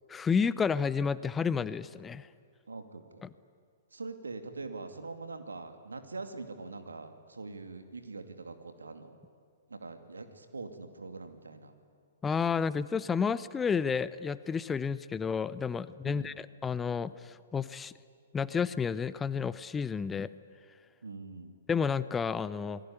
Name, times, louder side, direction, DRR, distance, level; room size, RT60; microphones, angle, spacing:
voice 1, 0.1-2.3 3.2-3.3 12.2-17.9 18.3-20.3 21.7-22.8, left 6 dB, 15° left, 16 dB, 0.6 m, -31 dB
voice 2, 2.7-3.3 3.9-9.2 9.7-11.7 16.0-16.3 21.0-21.5, right 3 dB, 75° right, 7 dB, 2.6 m, -43 dB
28.0 x 20.5 x 9.7 m, 2.2 s
figure-of-eight pair, 115°, 0 cm